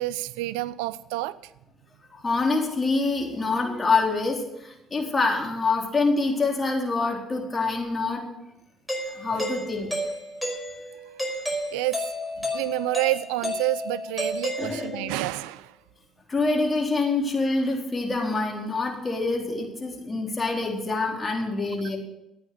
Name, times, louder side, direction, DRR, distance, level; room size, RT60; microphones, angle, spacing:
voice 1, 0.0-1.4 9.3-9.4 11.7-12.1 12.4-15.7, right 18 dB, 85° right, 17 dB, 0.4 m, -29 dB
voice 2, 2.1-8.2 9.2-9.9 12.5-12.6 14.6-15.1 16.3-22.0, left 3 dB, 25° left, 0 dB, 4.0 m, -26 dB
Doorbell, 8.9-15.2, equal, 5° left, 4.9 m, -32 dB
14.5 x 9.5 x 6.5 m, 0.88 s
supercardioid pair, 70°, 0 cm